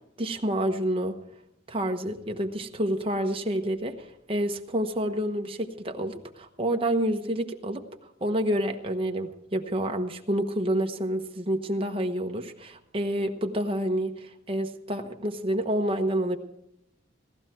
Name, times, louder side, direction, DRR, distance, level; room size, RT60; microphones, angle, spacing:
voice 1, 0.2-1.2 1.7-7.8 8.2-16.4, right 1 dB, 25° right, 4 dB, 1.1 m, -28 dB
18.0 x 13.5 x 4.5 m, 0.81 s
head